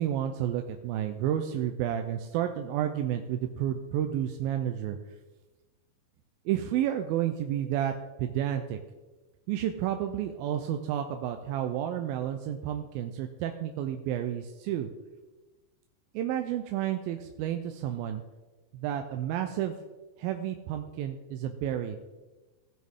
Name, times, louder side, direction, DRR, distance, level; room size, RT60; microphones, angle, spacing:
voice 1, 0.0-5.0 6.5-7.9 8.2-8.8 9.5-14.9 16.1-18.2 18.7-19.8 20.2-22.0, right 10 dB, 85° right, 5 dB, 2.4 m, -31 dB
17.0 x 6.3 x 3.5 m, 1.2 s
omnidirectional pair, 4.3 m